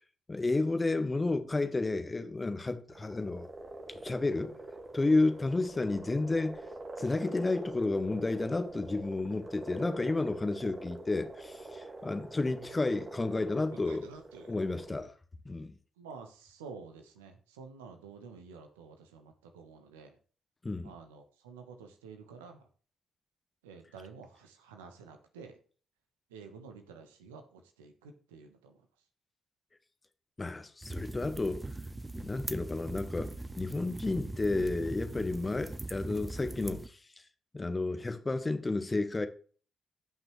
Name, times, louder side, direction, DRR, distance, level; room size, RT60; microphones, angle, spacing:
voice 1, 0.3-3.5 3.9-4.5 4.9-6.6 7.0-14.1 14.5-15.1 15.4-15.7 20.6-20.9 30.4-31.6 32.2-37.0 37.5-39.3, left 2 dB, 25° left, 1.6 m, -31 dB
sound 1, 2.9-15.0, right 2 dB, 35° right, 2.1 m, -45 dB
voice 2, 13.7-14.5 16.0-20.2 20.8-22.6 23.6-25.6 26.3-28.8, right 5 dB, 80° right, 1.3 m, -50 dB
sound 2, 30.8-36.9, right 2 dB, 20° right, 0.8 m, -40 dB
16.5 x 5.9 x 3.2 m
figure-of-eight pair, 40°, 0 cm